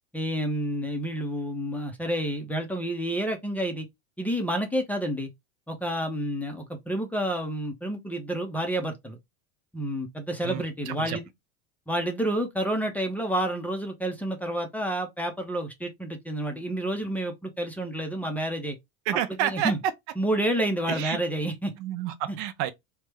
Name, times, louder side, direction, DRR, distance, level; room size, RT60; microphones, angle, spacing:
voice 1, 0.1-3.9 4.2-5.3 5.7-9.2 9.7-11.3 11.9-18.8 19.4-19.8 20.2-21.7, right 1 dB, 5° left, 0.5 m, -29 dB
voice 2, 10.4-11.2 19.1-19.9 20.9-21.2 21.8-22.7, right 11 dB, 55° right, 0.5 m, -29 dB
3.3 x 2.1 x 3.3 m
supercardioid pair, 130°, 36 cm